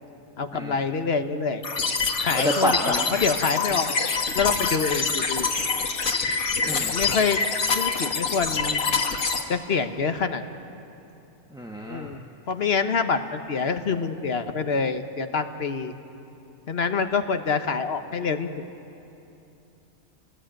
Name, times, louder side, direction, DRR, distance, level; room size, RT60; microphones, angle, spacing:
voice 1, 0.4-1.6 2.2-4.0 4.3-5.5 6.9-7.4 7.7-8.8 9.5-10.4 11.9-12.2 12.5-15.9 16.7-18.5, left 5 dB, 50° left, 8 dB, 1.2 m, -26 dB
sound 1, 1.6-9.4, left 5 dB, 90° left, 2.0 m, -26 dB
voice 2, 2.4-3.1 6.7-6.9 11.5-12.1, equal, 5° right, 0 dB, 1.2 m, -28 dB
29.5 x 19.5 x 8.9 m, 2.8 s
omnidirectional pair, 1.5 m